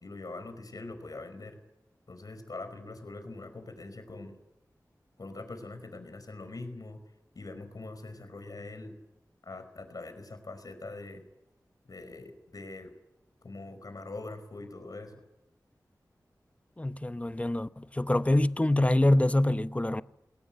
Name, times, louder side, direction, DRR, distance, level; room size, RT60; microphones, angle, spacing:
voice 1, 0.0-1.6 2.1-4.4 5.2-7.0 7.3-8.9 9.4-11.2 11.9-12.9 13.4-15.2, left 2 dB, 65° left, 5.0 m, -43 dB
voice 2, 16.8-20.0, left 1 dB, 20° left, 0.8 m, -25 dB
20.5 x 18.5 x 9.3 m
wide cardioid pair, 55°, 7 cm